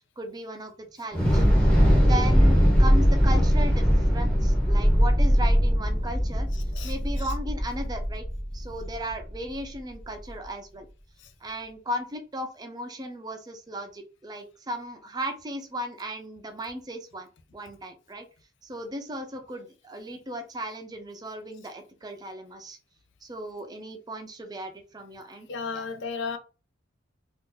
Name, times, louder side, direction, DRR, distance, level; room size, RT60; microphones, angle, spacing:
voice 1, 0.2-1.5 2.0-6.5 6.8-8.3 8.5-10.9 11.4-18.3 18.6-22.8 23.2-25.5 25.7-25.8, equal, 20° right, 0.5 m, -36 dB
Thunder / Explosion, 1.1-9.3, equal, 5° left, 0.8 m, -21 dB
voice 2, 6.7-7.3 25.5-26.4, left 5 dB, 65° left, 0.5 m, -34 dB
2.7 x 2.5 x 3.7 m
head